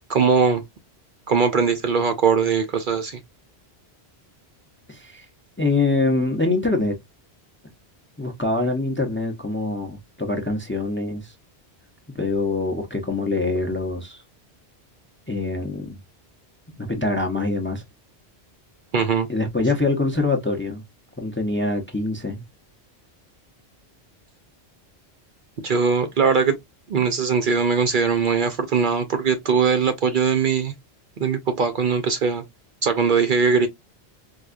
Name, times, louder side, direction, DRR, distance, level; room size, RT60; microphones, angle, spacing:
voice 1, 0.1-0.6 1.3-3.2 18.9-19.3 25.6-26.6 26.9-30.7 31.2-32.4 32.8-33.7, right 5 dB, 55° right, 0.7 m, -20 dB
voice 2, 4.9-5.3 5.6-6.9 8.2-11.3 12.1-14.2 15.3-16.0 16.8-17.8 19.3-20.8 21.2-22.4, left 2 dB, 15° left, 0.6 m, -24 dB
4.6 x 2.3 x 2.4 m
omnidirectional pair, 1.1 m